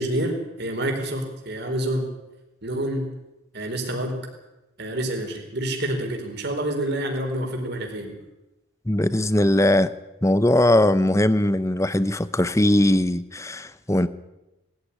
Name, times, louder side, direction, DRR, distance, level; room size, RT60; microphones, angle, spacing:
voice 1, 0.0-2.1 2.6-3.1 3.5-4.2 4.8-8.1, right 1 dB, 50° right, 4.4 m, -27 dB
voice 2, 8.9-9.9 10.2-14.1, left 1 dB, 15° left, 0.8 m, -20 dB
20.5 x 14.5 x 10.0 m
head